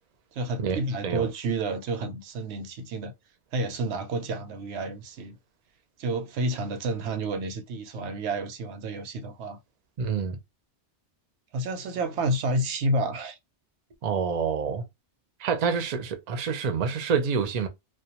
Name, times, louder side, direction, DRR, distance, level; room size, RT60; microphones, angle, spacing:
voice 1, 0.3-3.1 3.5-5.4 6.0-9.6 11.5-13.4, right 2 dB, 90° right, 0.9 m, -30 dB
voice 2, 10.0-10.4 14.0-14.8 15.4-17.7, right 6 dB, 50° right, 0.5 m, -27 dB
2.2 x 2.2 x 2.8 m
omnidirectional pair, 1.1 m